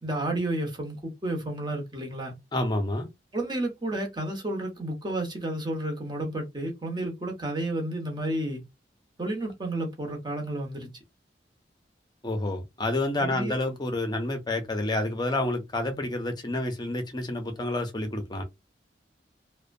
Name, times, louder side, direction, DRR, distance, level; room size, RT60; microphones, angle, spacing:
voice 1, 0.0-2.3 3.3-8.6 9.2-10.9 13.2-13.6, right 1 dB, 25° right, 0.9 m, -31 dB
voice 2, 2.5-3.1 12.2-18.4, left 2 dB, 25° left, 0.6 m, -29 dB
2.7 x 2.1 x 2.5 m
head